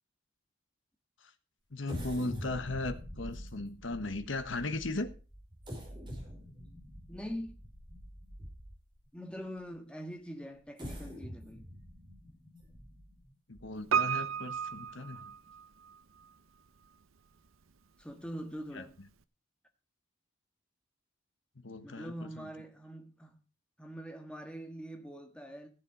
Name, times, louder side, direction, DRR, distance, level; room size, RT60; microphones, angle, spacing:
voice 1, 1.7-5.1 13.5-15.3 18.7-18.8 21.6-22.5, left 2 dB, 70° left, 1.3 m, -37 dB
sound 1, 1.8-9.0 9.6-9.7 10.6-14.1 14.6-14.7 15.1-15.3, equal, 25° right, 5.1 m, -45 dB
voice 2, 7.1-7.6 9.1-11.7 18.0-19.0 21.8-23.4 23.8-25.7, equal, 5° left, 1.6 m, -43 dB
Piano, 13.9-16.0 16.2-16.3, right 7 dB, 90° right, 0.7 m, -32 dB
14.5 x 7.6 x 5.3 m
head